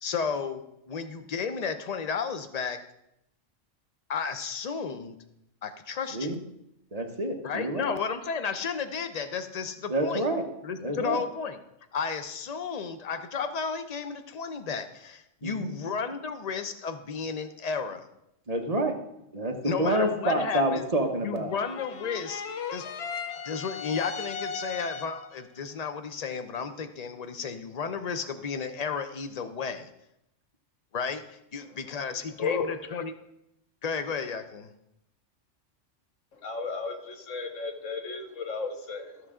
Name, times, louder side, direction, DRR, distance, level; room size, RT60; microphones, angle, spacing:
voice 1, 0.0-2.8 4.1-5.2 5.6-6.3 7.4-10.3 10.6-11.6 11.9-18.1 19.6-20.8 21.2-22.4 22.7-22.9 23.4-29.9 30.9-31.2 31.5-33.1 33.8-34.7, left 6 dB, 40° left, 8 dB, 0.7 m, -33 dB
voice 2, 6.9-7.9 9.9-10.4 10.8-11.2 15.4-15.7 18.5-19.0 19.3-21.5, right 1 dB, 35° right, 3 dB, 1.0 m, -28 dB
sound 1, 21.5-25.4, left 5 dB, 65° left, 0.9 m, -37 dB
voice 3, 36.4-39.2, left 4 dB, 90° left, 5 dB, 1.5 m, -33 dB
14.0 x 6.6 x 3.7 m, 0.82 s
omnidirectional pair, 1.3 m